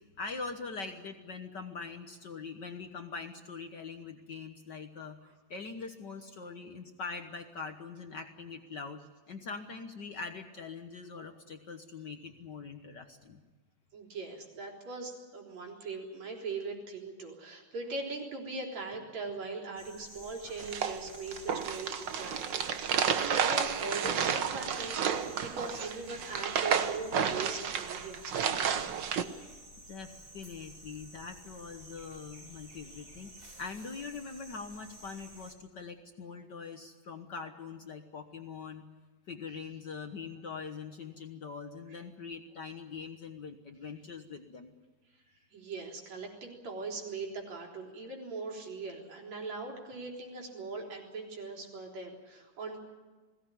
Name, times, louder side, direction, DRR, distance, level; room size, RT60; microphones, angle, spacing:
voice 1, 0.0-5.2 5.5-9.0 9.3-13.4 29.4-29.5 29.9-33.3 33.6-38.8 39.3-44.7, left 5 dB, 65° left, 6 dB, 1.1 m, -43 dB
voice 2, 13.9-28.6 41.9-42.0 45.5-52.8, right 3 dB, 60° right, 0 dB, 5.0 m, -40 dB
sound 1, 19.8-35.5, right 1 dB, 15° right, 3.5 m, -52 dB
sound 2, 20.6-29.2, right 7 dB, 90° right, 1.0 m, -31 dB
21.0 x 17.5 x 10.0 m, 1.3 s
omnidirectional pair, 3.6 m